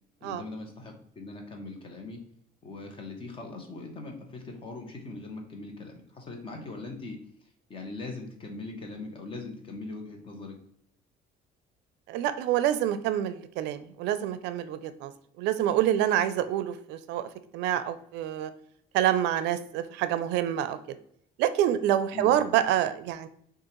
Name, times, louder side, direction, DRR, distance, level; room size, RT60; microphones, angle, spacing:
voice 1, 0.2-2.2 2.6-10.6 22.1-22.3, left 3 dB, 30° left, 3 dB, 0.9 m, -41 dB
voice 2, 12.1-15.1 15.4-18.5 18.9-21.0 21.4-23.3, right 11 dB, 85° right, 12 dB, 0.4 m, -27 dB
6.2 x 2.4 x 3.0 m, 0.69 s
cardioid pair, 145°, 18 cm